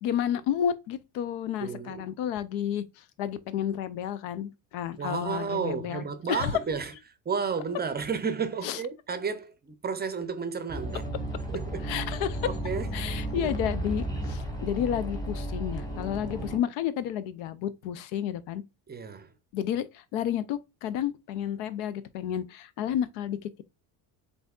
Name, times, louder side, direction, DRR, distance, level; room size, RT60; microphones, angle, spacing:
voice 1, 0.0-6.5 8.6-8.8 11.8-12.5 12.9-18.6 19.5-23.6, left 10 dB, 85° left, 0.7 m, -31 dB
voice 2, 1.6-2.0 5.0-6.9 7.3-11.1 11.5-11.9 12.5-13.5 18.9-19.3, right 5 dB, 20° right, 0.5 m, -32 dB
sound 1, 10.7-16.6, right 1 dB, 10° left, 1.1 m, -33 dB
7.8 x 2.7 x 2.3 m
cardioid pair, 105°, 46 cm